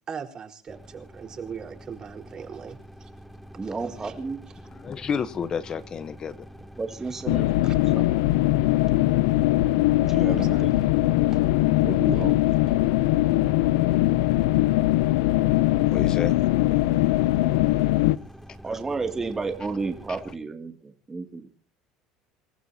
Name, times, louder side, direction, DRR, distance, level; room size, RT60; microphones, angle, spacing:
voice 1, 0.1-3.1 3.6-4.3 4.6-4.7 7.0-7.2 7.6-8.0 10.3-11.0 11.3-11.4 12.1-12.2, right 7 dB, 35° right, 4.4 m, -41 dB
sound 1, 0.7-20.3, equal, ahead, 1.6 m, -46 dB
voice 2, 3.6-4.4 6.8-7.5 7.7-8.0 10.1-10.7 11.8-12.4 18.6-21.5, right 4 dB, 20° right, 2.5 m, -32 dB
voice 3, 4.6-6.5 7.3-7.5 15.9-16.4 17.7-17.8, left 6 dB, 35° left, 1.0 m, -31 dB
sound 2, 7.3-18.2, left 17 dB, 85° left, 0.6 m, -21 dB
27.5 x 15.0 x 2.8 m
supercardioid pair, 105°, 2 cm